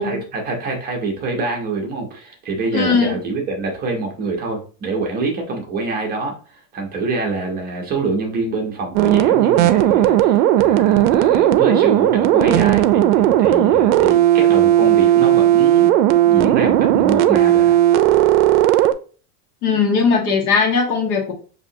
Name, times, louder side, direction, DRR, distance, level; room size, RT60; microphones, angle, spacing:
voice 1, 0.0-15.9 16.2-17.8, right 3 dB, 20° right, 1 dB, 0.6 m, -25 dB
voice 2, 2.7-3.2 19.6-21.3, left 5 dB, 85° left, 1 dB, 1.4 m, -18 dB
sound 1, 8.9-18.9, right 12 dB, 75° right, 0.5 m, -15 dB
5.3 x 2.8 x 2.7 m, 0.38 s
supercardioid pair, 155°, 44 cm